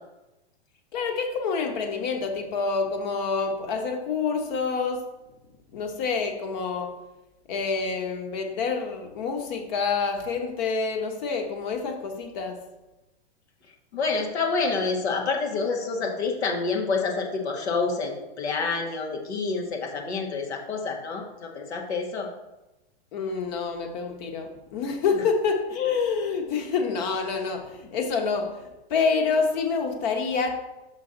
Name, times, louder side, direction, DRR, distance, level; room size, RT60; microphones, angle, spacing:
voice 1, 0.9-5.0 5.7-6.9 7.5-12.6 23.1-30.6, left 5 dB, 45° left, 3 dB, 1.3 m, -27 dB
voice 2, 13.9-22.3, left 4 dB, 90° left, 1 dB, 1.7 m, -28 dB
5.8 x 5.8 x 3.9 m, 1.0 s
hypercardioid pair, 155°, 32 cm